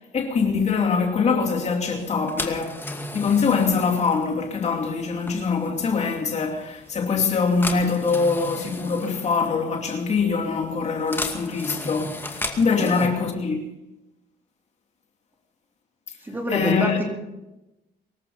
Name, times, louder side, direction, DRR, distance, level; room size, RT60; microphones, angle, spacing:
voice 1, 0.1-2.8 3.1-13.6 16.5-17.0, left 5 dB, 40° left, 2.7 m, -23 dB
sound 1, 2.0-13.1, left 2 dB, 10° left, 2.3 m, -36 dB
voice 2, 16.2-17.0, equal, 10° right, 4.1 m, -26 dB
24.0 x 13.5 x 4.2 m
cardioid pair, 110°, 17 cm